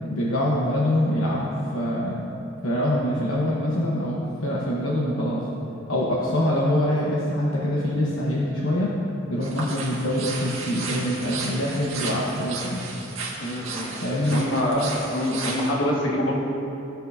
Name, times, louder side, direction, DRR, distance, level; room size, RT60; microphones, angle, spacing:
voice 1, 0.1-2.2 2.6-5.4 5.9-8.9 9.3-12.8 14.0-14.4, left 1 dB, 80° left, -5 dB, 1.1 m, -24 dB
sound 1, 9.4-15.7, right 4 dB, 90° right, 1.8 m, -34 dB
voice 2, 13.4-13.9 14.3-16.4, left 1 dB, 60° left, -3 dB, 1.7 m, -25 dB
16.0 x 7.2 x 2.7 m, 2.8 s
head